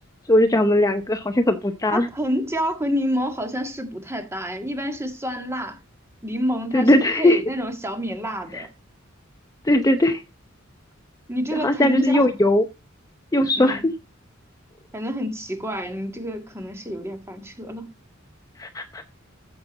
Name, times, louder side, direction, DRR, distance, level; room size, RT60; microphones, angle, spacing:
voice 1, 0.3-2.1 6.7-7.4 8.5-8.6 9.6-10.2 11.5-12.6 13.3-13.8 18.6-19.0, left 1 dB, 15° left, 0.7 m, -19 dB
voice 2, 1.9-5.8 6.2-8.7 11.3-12.3 13.5-13.9 14.9-17.9, equal, 15° right, 1.7 m, -28 dB
14.0 x 6.9 x 4.0 m
head